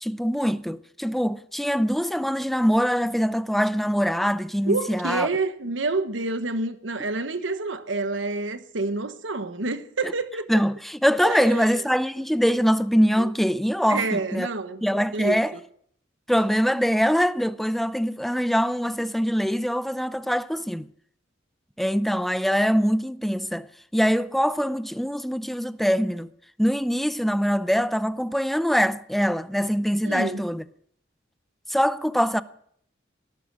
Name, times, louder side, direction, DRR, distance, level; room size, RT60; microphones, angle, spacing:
voice 1, 0.0-5.3 10.0-10.1 10.5-14.5 14.8-15.5 16.3-20.9 21.8-23.7 23.9-26.3 26.6-30.6 31.7-32.4, equal, ahead, 0.5 m, -23 dB
voice 2, 4.6-10.6 11.2-11.8 13.2-13.3 13.9-14.9 15.1-15.4 30.0-30.4, right 3 dB, 85° right, 1.3 m, -28 dB
18.0 x 12.0 x 6.2 m
head